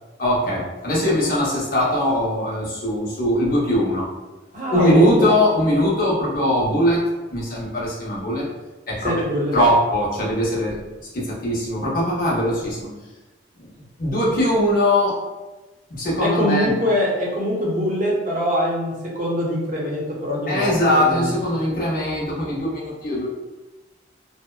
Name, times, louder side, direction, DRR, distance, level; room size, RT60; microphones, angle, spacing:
voice 1, 0.2-4.1 4.7-7.0 7.3-8.5 8.9-9.1 9.5-10.8 11.1-12.9 13.6-13.7 14.0-15.2 15.9-16.7 20.5-23.3, left 1 dB, 45° left, -5 dB, 0.7 m, -21 dB
voice 2, 4.5-5.2 9.0-9.5 12.4-12.5 16.2-21.3, equal, 40° right, -4 dB, 0.7 m, -23 dB
2.7 x 2.1 x 2.2 m, 1.1 s
head